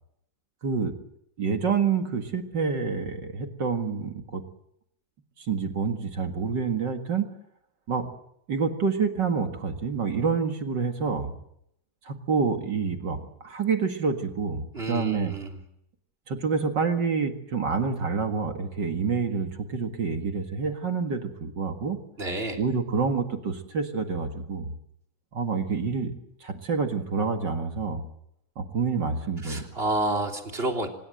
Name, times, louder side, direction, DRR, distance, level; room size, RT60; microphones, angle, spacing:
voice 1, 0.6-0.9 1.4-4.4 5.4-7.3 7.9-8.0 8.5-11.3 12.0-15.3 16.3-22.0 22.6-24.7 25.3-26.1 26.4-28.0 28.5-29.6, right 5 dB, 40° right, 5 dB, 1.6 m, -27 dB
voice 2, 14.7-15.6 22.2-22.6 29.4-30.9, right 2 dB, 15° right, 2 dB, 2.9 m, -29 dB
25.5 x 21.0 x 7.9 m, 0.77 s
omnidirectional pair, 4.4 m